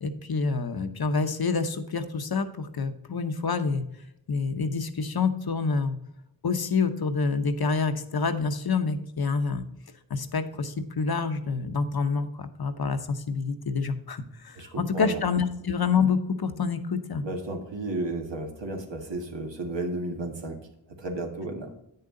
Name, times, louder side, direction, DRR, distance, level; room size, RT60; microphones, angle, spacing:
voice 1, 0.0-3.8 4.3-6.0 6.4-9.7 10.1-17.2, left 5 dB, 55° left, 9 dB, 0.9 m, -27 dB
voice 2, 14.6-15.2 17.2-20.6 21.0-21.7, right 2 dB, 70° right, 2 dB, 1.8 m, -33 dB
8.8 x 6.7 x 3.8 m, 0.80 s
cardioid pair, 50°, 45 cm